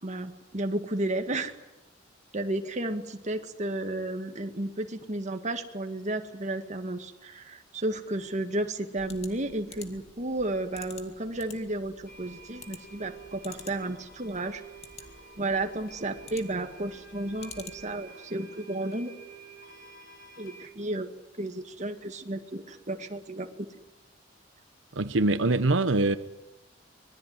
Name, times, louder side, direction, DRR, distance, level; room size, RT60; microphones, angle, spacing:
voice 1, 0.0-1.5 2.3-14.6 15.4-19.1 20.4-21.1 21.4-23.7, right 2 dB, 40° right, 2.0 m, -33 dB
sound 1, 8.9-18.1, left 5 dB, 35° left, 2.4 m, -50 dB
sound 2, 12.1-20.7, right 5 dB, 55° left, 5.4 m, -50 dB
voice 2, 24.9-26.2, right 2 dB, 85° right, 1.1 m, -23 dB
25.0 x 20.5 x 9.7 m
head